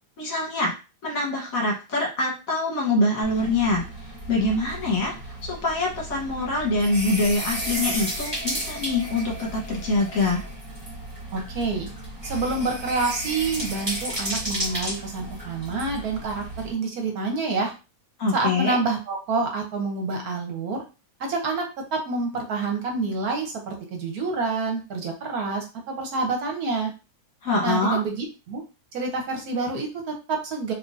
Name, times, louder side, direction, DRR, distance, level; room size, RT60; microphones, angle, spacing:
voice 1, 0.2-0.7 1.0-10.4 18.2-18.8 27.4-28.0, left 2 dB, 60° left, -2 dB, 1.5 m, -25 dB
sound 1, 3.2-16.7, right 1 dB, 15° right, 1.5 m, -33 dB
voice 2, 11.3-11.9 12.2-17.7 18.3-20.8 21.2-21.7 21.9-26.9 27.6-28.6 28.9-30.7, right 3 dB, 65° right, 3 dB, 1.2 m, -27 dB
3.6 x 2.9 x 2.5 m, 0.30 s
omnidirectional pair, 1.8 m